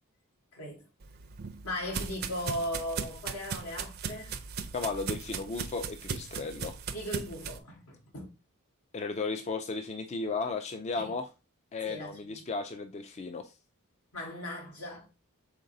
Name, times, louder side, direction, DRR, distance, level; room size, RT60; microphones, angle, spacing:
voice 1, 0.5-0.8 1.6-4.3 6.9-8.3 11.0-11.1 11.8-12.4 14.1-15.1, left 1 dB, 85° left, 1.6 m, -38 dB
sound 1, 1.0-7.6, right 6 dB, 45° right, 0.5 m, -38 dB
voice 2, 4.7-6.7 8.9-11.3 11.7-13.5, left 4 dB, 30° left, 0.3 m, -35 dB
5.1 x 3.9 x 2.6 m
head